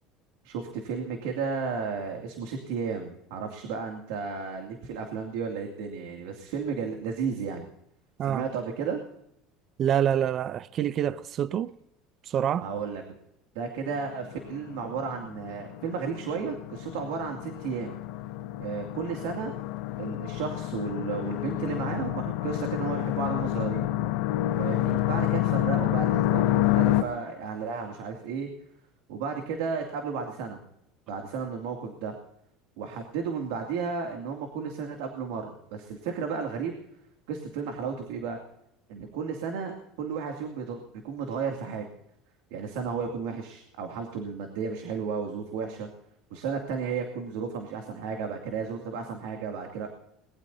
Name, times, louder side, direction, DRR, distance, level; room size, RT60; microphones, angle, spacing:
voice 1, 0.4-7.7 8.3-9.0 12.6-13.0 13.5-18.0 18.6-19.5 20.0-23.9 24.6-28.5 29.1-30.6 31.1-32.1 32.8-36.7 37.3-38.4 38.9-41.9 42.5-45.9 46.3-49.9, right 5 dB, 80° right, 2.5 m, -33 dB
voice 2, 9.8-11.7 12.3-12.7, right 9 dB, 35° right, 0.5 m, -26 dB
sound 1, 13.9-27.0, left 15 dB, 65° left, 0.6 m, -28 dB
22.5 x 20.5 x 2.8 m
cardioid pair, 155°, 0 cm